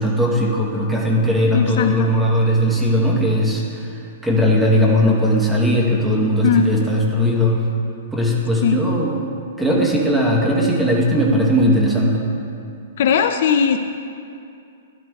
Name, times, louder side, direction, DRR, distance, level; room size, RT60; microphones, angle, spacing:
voice 1, 0.0-3.9 4.2-7.6 8.1-9.3 9.6-12.2, equal, 5° right, -2 dB, 0.9 m, -18 dB
voice 2, 1.5-2.1 6.4-6.7 8.6-8.8 13.0-13.8, left 6 dB, 50° left, 7 dB, 0.4 m, -18 dB
12.5 x 11.5 x 2.3 m, 2.5 s
hypercardioid pair, 170°, 0 cm